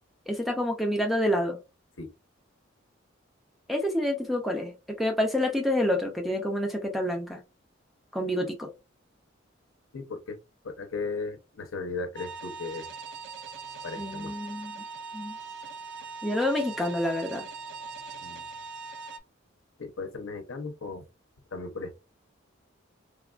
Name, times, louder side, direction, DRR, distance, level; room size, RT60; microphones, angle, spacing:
voice 1, 0.3-1.6 3.7-7.4 8.1-8.7 14.0-14.8 15.1-15.4 16.2-17.5, left 1 dB, ahead, 0.4 m, -28 dB
voice 2, 9.9-10.4 10.6-12.9 13.8-14.3 18.2-18.4 19.8-21.0 21.5-21.9, left 3 dB, 80° left, 0.7 m, -36 dB
sound 1, 12.1-19.2, right 4 dB, 55° right, 0.4 m, -41 dB
3.2 x 2.3 x 2.3 m
head